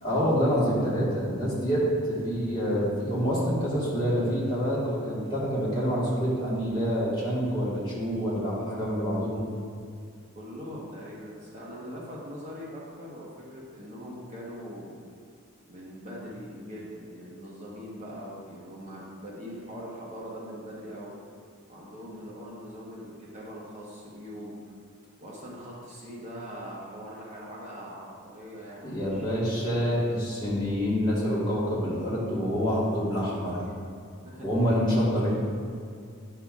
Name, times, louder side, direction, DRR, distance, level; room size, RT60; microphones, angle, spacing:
voice 1, 0.0-9.4 28.8-33.6 34.4-35.3, equal, 20° left, -8 dB, 1.5 m, -27 dB
voice 2, 10.3-14.9 15.7-21.1 21.7-24.7 25.2-29.3 34.2-34.5, equal, 30° right, -6 dB, 1.1 m, -42 dB
9.5 x 5.7 x 2.4 m, 2.3 s
head